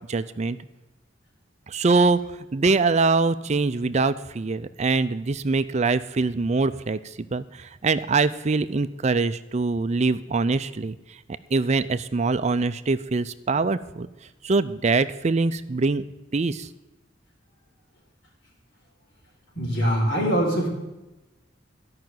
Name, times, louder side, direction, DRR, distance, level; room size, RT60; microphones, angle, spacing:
voice 1, 0.1-0.6 1.7-2.2 2.5-11.2 11.5-14.1 14.4-16.0 16.3-16.7, right 3 dB, 35° right, 13 dB, 0.5 m, -23 dB
voice 2, 19.5-20.7, equal, 65° left, -1 dB, 4.6 m, -23 dB
13.5 x 5.8 x 9.2 m, 1.0 s
head